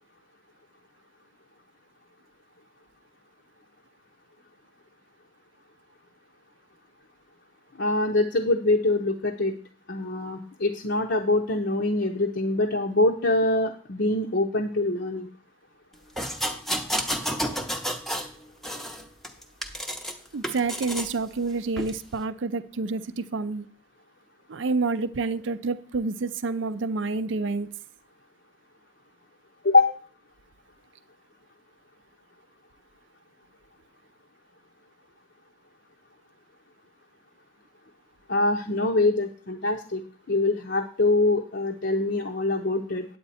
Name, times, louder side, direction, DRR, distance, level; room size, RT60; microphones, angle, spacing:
voice 1, 7.8-9.5 9.9-15.3 29.6-29.9 38.3-40.0 40.3-43.1, left 2 dB, 55° left, 2 dB, 0.6 m, -24 dB
sound 1, 16.2-18.3 18.6-20.1 20.4-21.1 21.8-21.9, equal, ahead, 0.6 m, -30 dB
voice 2, 20.3-23.7 24.5-27.7, right 3 dB, 70° right, 13 dB, 0.5 m, -28 dB
8.9 x 8.5 x 4.2 m, 0.43 s
head